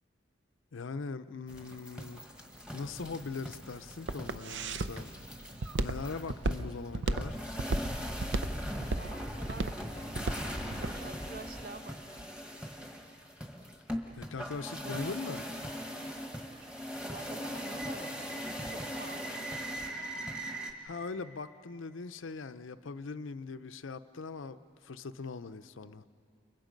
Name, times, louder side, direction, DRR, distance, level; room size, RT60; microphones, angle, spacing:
voice 1, 0.7-2.2 2.7-5.1 5.8-7.4 14.1-15.4 20.8-24.6 24.8-26.1, left 4 dB, 85° left, 0.6 m, -41 dB
sound 1, 1.5-20.7, equal, 5° right, 1.4 m, -40 dB
Walk footsteps, 2.8-11.0, right 2 dB, 65° right, 0.6 m, -34 dB
voice 2, 8.7-10.4 10.7-12.3 14.5-15.1 17.1-18.1 18.4-19.5, right 2 dB, 50° right, 1.1 m, -48 dB
30.0 x 29.5 x 5.2 m
head